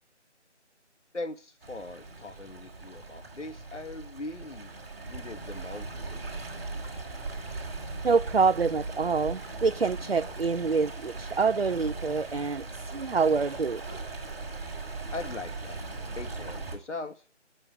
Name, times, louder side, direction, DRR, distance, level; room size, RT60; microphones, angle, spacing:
voice 1, 1.1-4.7 5.1-6.4 15.1-15.8 16.1-17.2, left 2 dB, 80° left, 2.3 m, -40 dB
Stream, 1.6-16.8, right 3 dB, 15° right, 4.2 m, -39 dB
voice 2, 8.0-13.8, right 5 dB, 55° right, 0.7 m, -26 dB
14.0 x 9.4 x 9.8 m
figure-of-eight pair, 180°, 35 cm